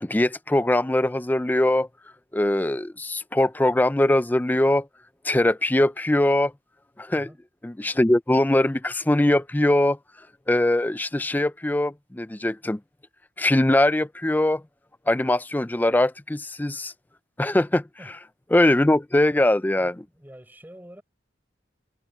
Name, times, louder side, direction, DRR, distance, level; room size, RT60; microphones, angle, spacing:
voice 1, 0.0-1.9 2.3-4.9 5.2-6.5 7.0-7.3 7.6-10.0 10.5-12.8 13.4-14.6 15.1-16.9 17.4-17.8 18.5-20.0, left 1 dB, 10° left, 0.4 m, -21 dB
voice 2, 19.7-21.0, equal, 10° right, 5.0 m, -46 dB
head